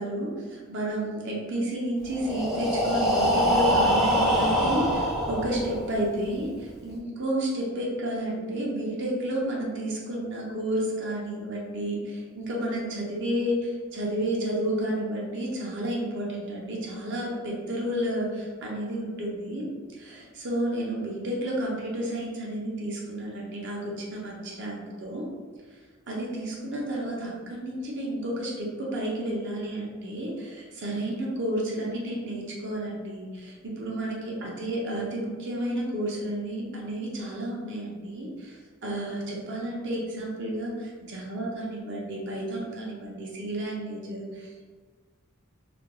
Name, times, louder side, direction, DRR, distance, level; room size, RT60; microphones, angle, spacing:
voice 1, 0.0-25.3 26.1-44.7, right 1 dB, 55° right, -3 dB, 0.6 m, -31 dB
Breathing, 2.1-6.0, equal, ahead, 0.3 m, -24 dB
2.4 x 2.2 x 2.9 m, 1.5 s
head